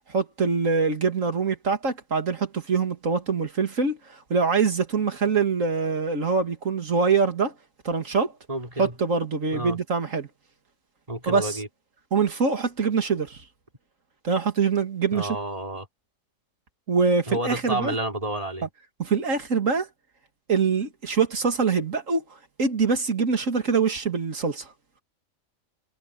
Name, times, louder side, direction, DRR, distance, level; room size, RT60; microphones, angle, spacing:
voice 1, 0.1-7.5 7.8-8.3 8.8-10.3 11.3-11.6 12.1-13.4 14.2-15.4 16.9-17.9 19.0-19.9 20.5-22.2 22.6-24.7, right 5 dB, 75° right, 2.7 m, -24 dB
voice 2, 8.5-8.9 9.5-9.8 11.1-11.7 15.1-15.9 17.3-18.7, right 1 dB, 25° right, 4.5 m, -30 dB
omnidirectional pair, 1.3 m